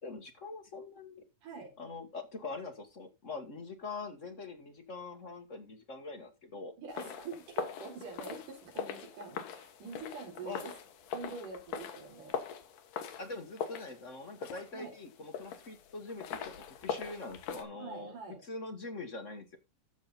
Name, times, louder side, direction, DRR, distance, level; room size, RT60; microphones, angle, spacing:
voice 1, 0.0-1.2 1.8-6.7 10.4-10.7 13.2-18.2 18.4-19.6, left 3 dB, 55° left, 6 dB, 0.8 m, -43 dB
voice 2, 1.4-1.7 6.8-10.7 11.1-12.4 14.7-14.9 17.8-18.4, right 4 dB, 75° right, 2 dB, 5.4 m, -45 dB
sound 1, 6.9-17.6, left 8 dB, 80° left, 2.9 m, -42 dB
14.5 x 5.7 x 4.0 m, 0.24 s
omnidirectional pair, 3.7 m